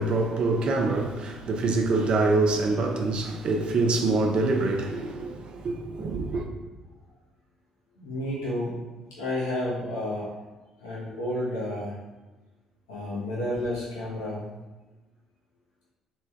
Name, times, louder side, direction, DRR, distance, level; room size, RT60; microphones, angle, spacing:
voice 1, 0.0-5.4 5.6-6.4, right 3 dB, 50° right, 0.7 m, -25 dB
voice 2, 8.0-10.3 10.8-12.0 12.9-14.5, left 1 dB, 85° left, 1.1 m, -31 dB
3.4 x 3.0 x 4.4 m
hypercardioid pair, 50°, 2 cm